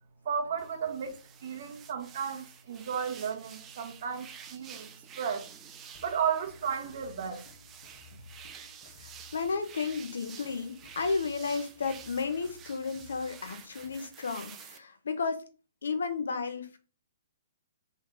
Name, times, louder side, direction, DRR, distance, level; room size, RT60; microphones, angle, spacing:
voice 1, 0.2-4.9 5.2-5.5 6.0-7.5, right 7 dB, 55° right, 1.0 m, -34 dB
sound 1, 0.6-14.8, right 8 dB, 20° right, 0.5 m, -50 dB
sound 2, 5.9-14.1, left 4 dB, 45° left, 1.2 m, -56 dB
voice 2, 9.0-15.4 15.8-16.8, left 4 dB, 70° left, 0.7 m, -33 dB
3.2 x 3.2 x 3.8 m
figure-of-eight pair, 125°, 0 cm